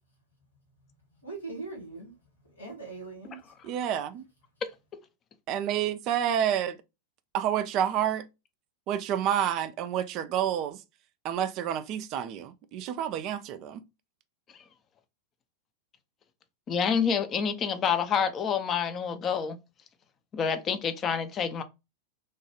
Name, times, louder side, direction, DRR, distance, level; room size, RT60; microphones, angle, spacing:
voice 1, 0.8-3.8, right 3 dB, 70° left, 1.4 m, -42 dB
voice 2, 3.7-4.3 5.5-6.8 7.3-8.3 8.9-10.8 11.2-13.8, right 10 dB, 40° right, 0.3 m, -29 dB
voice 3, 16.7-19.6 20.3-21.6, left 7 dB, 25° left, 0.5 m, -28 dB
3.2 x 2.2 x 2.9 m
figure-of-eight pair, 90°, 0 cm